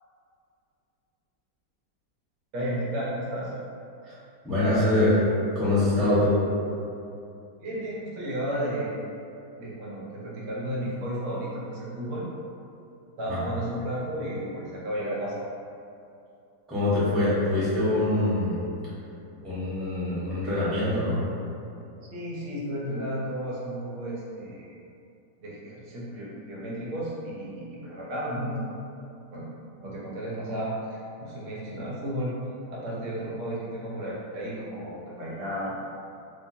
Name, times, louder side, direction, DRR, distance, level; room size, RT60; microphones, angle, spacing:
voice 1, 2.5-3.5 7.6-9.0 9.6-12.3 13.2-15.4 22.1-24.7 25.4-28.6 29.3-29.5 29.8-32.3 32.7-35.7, equal, 90° right, -6 dB, 1.7 m, -33 dB
voice 2, 4.4-5.2 5.5-6.4 13.3-13.4 16.7-18.6 19.4-21.2, left 1 dB, ahead, -12 dB, 0.8 m, -24 dB
4.3 x 2.3 x 2.7 m, 2.6 s
omnidirectional pair, 2.2 m